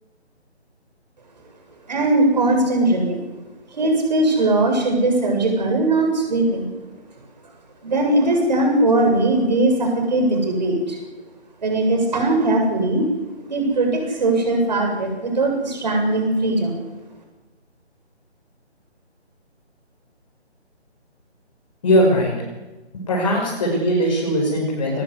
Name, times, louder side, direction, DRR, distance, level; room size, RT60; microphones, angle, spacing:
voice 1, 1.9-3.2 3.7-6.7 7.8-11.0 11.6-13.0 13.5-16.7, right 2 dB, 40° right, 2 dB, 7.8 m, -19 dB
voice 2, 21.8-22.3 22.9-25.0, equal, 30° left, -3 dB, 6.0 m, -19 dB
22.5 x 21.0 x 8.3 m, 1.2 s
figure-of-eight pair, 150°, 34 cm